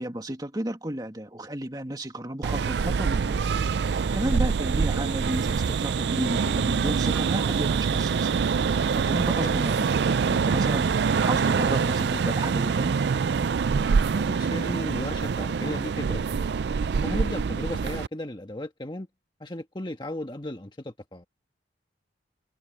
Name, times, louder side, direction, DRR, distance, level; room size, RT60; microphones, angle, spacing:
voice 1, 0.0-3.4 3.8-8.4 8.7-9.9 10.3-13.0, right 1 dB, 20° right, 2.3 m, -33 dB
sound 1, 2.4-18.1, right 5 dB, 65° right, 0.4 m, -25 dB
voice 2, 14.1-16.5 17.0-19.1 19.4-21.2, left 1 dB, 25° left, 1.5 m, -35 dB
open air
head